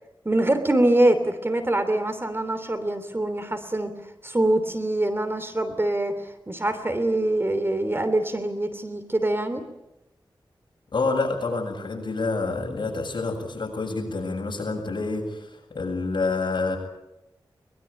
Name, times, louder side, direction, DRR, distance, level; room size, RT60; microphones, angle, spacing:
voice 1, 0.2-3.9 4.2-9.6, right 1 dB, 30° right, 9 dB, 3.0 m, -24 dB
voice 2, 10.9-16.8, left 3 dB, 65° left, 1 dB, 7.7 m, -28 dB
23.0 x 21.5 x 8.8 m, 0.92 s
wide cardioid pair, 75°, 8 cm